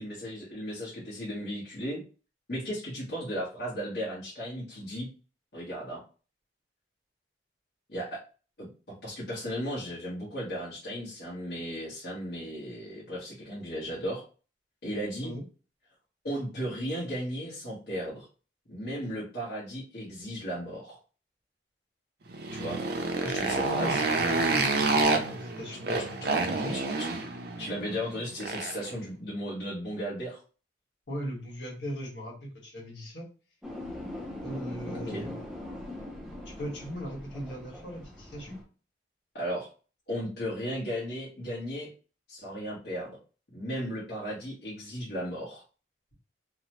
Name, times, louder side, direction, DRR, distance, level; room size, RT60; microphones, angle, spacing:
voice 1, 0.0-2.0 2.5-5.1 5.5-6.0 7.9-8.2 8.6-8.7 9.0-14.2 14.8-15.3 16.2-18.3 18.7-21.0 22.5-22.8 23.2-24.0 26.7-27.1 27.6-30.4 34.9-35.3 39.3-39.7 40.1-41.9 42.3-43.2 43.5-45.6, equal, 55° left, -8 dB, 1.0 m, -35 dB
Motorcycle, 22.3-28.9, right 3 dB, 55° right, 0.5 m, -28 dB
voice 2, 23.6-26.8 31.1-33.3 34.4-35.4 36.6-38.6, equal, 75° left, -2 dB, 1.4 m, -38 dB
sound 1, 33.6-38.6, left 1 dB, 5° right, 0.5 m, -41 dB
2.8 x 2.0 x 2.9 m, 0.35 s
head